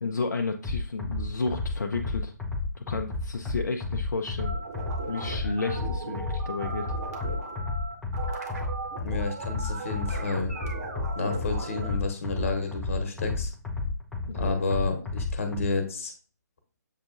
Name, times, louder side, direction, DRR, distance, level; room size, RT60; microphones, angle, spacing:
voice 1, 0.0-2.3 2.8-4.5 5.1-6.9 14.3-14.5, left 3 dB, 70° left, 4 dB, 0.5 m, -32 dB
sound 1, 0.6-15.6, left 3 dB, 5° left, 0.5 m, -32 dB
sound 2, 4.4-12.0, right 3 dB, 55° right, 1.2 m, -38 dB
voice 2, 9.0-10.5 11.1-13.5 14.3-16.1, left 3 dB, 45° left, 5 dB, 1.1 m, -30 dB
7.2 x 2.6 x 2.5 m, 0.40 s
figure-of-eight pair, 140°, 10 cm